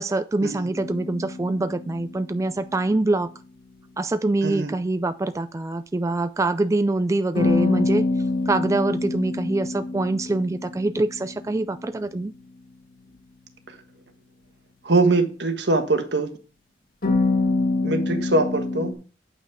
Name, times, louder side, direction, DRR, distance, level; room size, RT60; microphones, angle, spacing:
voice 1, 0.0-3.3 4.0-12.3, right 2 dB, 15° right, 11 dB, 0.3 m, -25 dB
sound 1, 0.7-3.0 7.3-12.2 17.0-18.9, left 3 dB, 55° left, 1.7 m, -26 dB
voice 2, 14.8-16.3 17.8-19.0, right 2 dB, 65° right, 7 dB, 1.4 m, -22 dB
8.8 x 5.7 x 4.7 m, 0.38 s
head